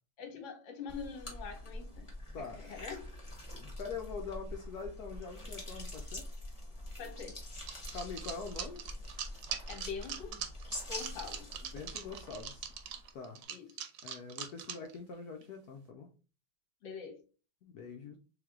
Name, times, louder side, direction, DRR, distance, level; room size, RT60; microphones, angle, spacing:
voice 1, 0.2-3.1 7.0-7.4 9.7-10.4 10.8-11.5 13.5-13.8 16.8-17.2, left 6 dB, 50° left, 1.0 m, -44 dB
sound 1, 0.9-13.1, left 1 dB, 25° left, 0.7 m, -45 dB
voice 2, 2.3-2.8 3.6-6.3 7.9-8.8 11.7-12.7 13.1-13.4 14.0-16.1 17.6-18.2, left 5 dB, 90° left, 0.8 m, -44 dB
sound 2, 7.7-15.0 15.4-15.5 15.7-15.8, right 9 dB, 75° right, 1.2 m, -42 dB
3.4 x 3.1 x 3.6 m
omnidirectional pair, 2.3 m